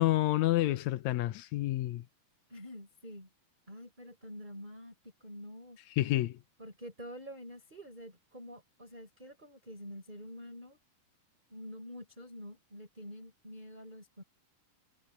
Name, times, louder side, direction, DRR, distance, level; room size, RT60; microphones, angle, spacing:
voice 1, 0.0-2.0 6.0-6.4, left 16 dB, 85° left, 1.6 m, -29 dB
voice 2, 2.5-3.3 3.7-5.0 5.2-5.8 6.6-10.8 11.5-14.2, equal, 10° right, 5.7 m, -47 dB
omnidirectional pair, 4.2 m